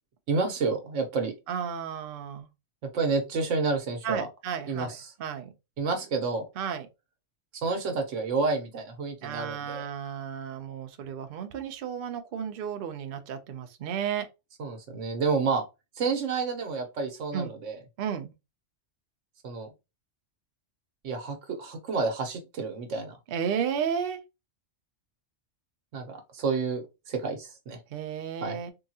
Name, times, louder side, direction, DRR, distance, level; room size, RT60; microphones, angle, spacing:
voice 1, 0.3-1.3 2.9-4.3 4.7-5.0 5.8-6.4 7.6-9.9 14.6-15.6 16.0-17.8 19.4-19.7 21.0-23.2 25.9-27.8 28.4-28.6, right 4 dB, 90° right, 1.2 m, -29 dB
voice 2, 1.5-2.5 4.0-5.5 6.6-6.9 9.2-14.3 17.3-17.5 18.0-18.3 23.3-24.2 27.9-28.7, right 7 dB, 60° right, 0.7 m, -33 dB
3.7 x 2.3 x 2.7 m
omnidirectional pair, 1.2 m